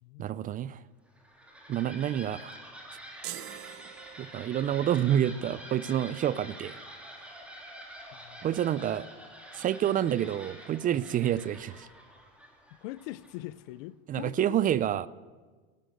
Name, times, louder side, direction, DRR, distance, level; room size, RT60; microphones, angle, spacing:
voice 1, 0.2-0.8 1.7-2.6 4.2-6.8 8.4-9.1 9.5-11.9 14.1-15.1, right 10 dB, 30° right, 0.4 m, -28 dB
sound 1, 1.1-13.6, equal, 5° right, 3.0 m, -47 dB
sound 2, 3.2-4.8, right 14 dB, 45° right, 0.9 m, -43 dB
voice 2, 10.9-11.3 12.8-14.6, left 17 dB, 75° left, 0.7 m, -42 dB
13.5 x 13.0 x 7.9 m
supercardioid pair, 120°, 30 cm